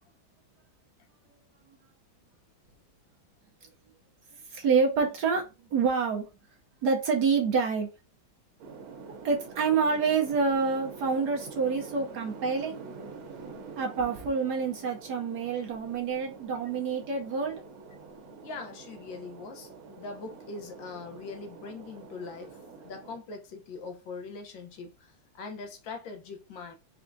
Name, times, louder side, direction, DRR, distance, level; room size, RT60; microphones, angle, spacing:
voice 1, 4.5-6.3 6.8-7.9 9.2-12.8 13.8-17.6, right 5 dB, 65° right, 1.1 m, -27 dB
sound 1, 8.6-23.2, right 4 dB, 80° right, 1.7 m, -46 dB
voice 2, 18.4-19.7 20.0-22.6 22.8-26.8, left 4 dB, 70° left, 1.5 m, -41 dB
4.4 x 3.5 x 2.6 m
omnidirectional pair, 2.2 m